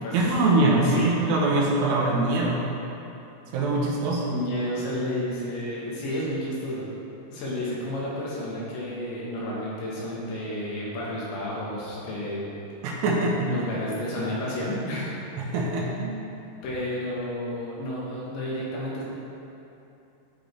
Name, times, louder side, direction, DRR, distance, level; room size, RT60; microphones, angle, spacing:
voice 1, 0.1-2.7 3.5-4.4 12.8-13.5 15.4-16.2, right 2 dB, 85° right, -3 dB, 3.4 m, -23 dB
voice 2, 4.3-6.9 7.3-12.4 13.5-15.1 16.6-19.0, left 1 dB, 75° left, -6 dB, 3.6 m, -31 dB
12.0 x 5.1 x 3.4 m, 2.9 s
omnidirectional pair, 5.6 m